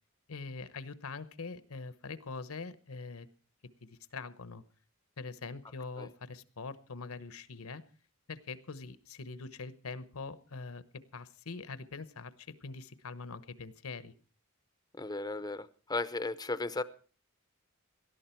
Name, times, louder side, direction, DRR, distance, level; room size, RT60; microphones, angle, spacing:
voice 1, 0.3-3.3 3.8-4.6 5.2-7.8 8.3-10.8 11.1-14.1, left 4 dB, 75° left, 1.0 m, -43 dB
voice 2, 15.0-16.8, left 2 dB, 20° left, 0.6 m, -35 dB
18.5 x 12.5 x 4.5 m
head